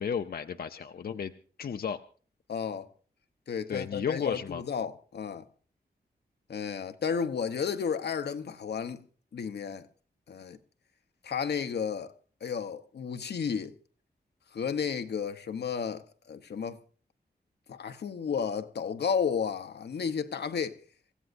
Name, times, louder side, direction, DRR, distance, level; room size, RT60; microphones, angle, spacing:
voice 1, 0.0-1.3 1.6-2.0 3.7-4.6, left 7 dB, 65° left, 0.6 m, -33 dB
voice 2, 2.5-2.9 3.5-5.4 6.5-9.0 9.3-9.9 10.3-10.6 11.2-12.1 12.4-13.8 14.5-16.8 17.7-20.8, left 6 dB, 80° left, 0.9 m, -32 dB
26.5 x 15.0 x 2.6 m
wide cardioid pair, 135°, 17 cm